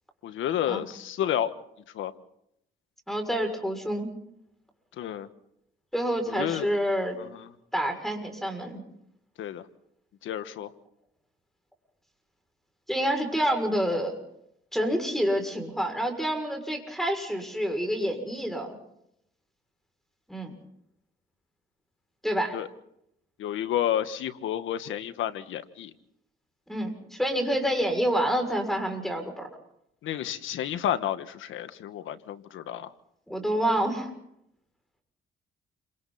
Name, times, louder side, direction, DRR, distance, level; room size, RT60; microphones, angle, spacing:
voice 1, 0.2-1.5 1.9-2.1 5.0-5.3 6.3-6.7 7.2-7.5 9.4-9.6 10.2-10.7 22.5-22.7 23.4-25.9 30.0-32.9, left 11 dB, 80° left, 11 dB, 1.5 m, -30 dB
voice 2, 3.1-4.1 5.9-7.2 7.7-8.8 12.9-14.1 14.7-18.8 20.3-20.5 22.2-22.6 26.7-29.5 33.3-34.1, equal, ahead, 5 dB, 6.6 m, -28 dB
29.0 x 26.0 x 4.3 m, 0.77 s
cardioid pair, 90°, 20 cm